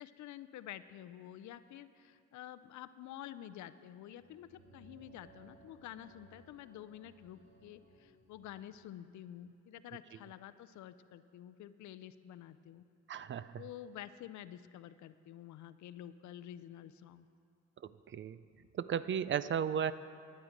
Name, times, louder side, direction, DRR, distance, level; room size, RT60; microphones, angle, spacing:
voice 1, 0.0-12.8 13.6-17.3, left 11 dB, 70° left, 13 dB, 0.5 m, -49 dB
sound 1, 4.1-8.7, right 2 dB, 85° right, 2.0 m, -62 dB
voice 2, 13.1-13.5 18.1-18.4 18.8-19.9, right 8 dB, 40° right, 15 dB, 0.4 m, -34 dB
12.0 x 9.5 x 5.1 m, 2.3 s
cardioid pair, 90°, 30 cm